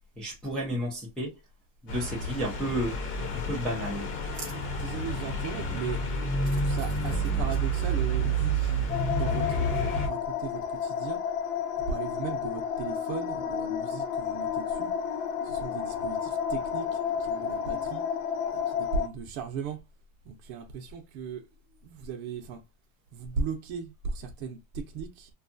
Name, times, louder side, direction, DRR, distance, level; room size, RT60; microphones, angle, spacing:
voice 1, 0.2-1.3 1.8-3.0 3.3-4.1, equal, ahead, 0.3 m, -32 dB
sound 1, 1.9-10.1, right 2 dB, 50° left, 1.0 m, -29 dB
voice 2, 4.2-6.0 6.5-11.2 11.9-14.9 15.4-16.9 17.2-18.0 18.7-19.8 20.2-21.5 21.8-22.6 23.1-25.3, right 5 dB, 50° right, 0.7 m, -37 dB
sound 2, 8.9-19.1, left 7 dB, 70° left, 0.7 m, -31 dB
2.6 x 2.3 x 2.5 m
supercardioid pair, 165°, 39 cm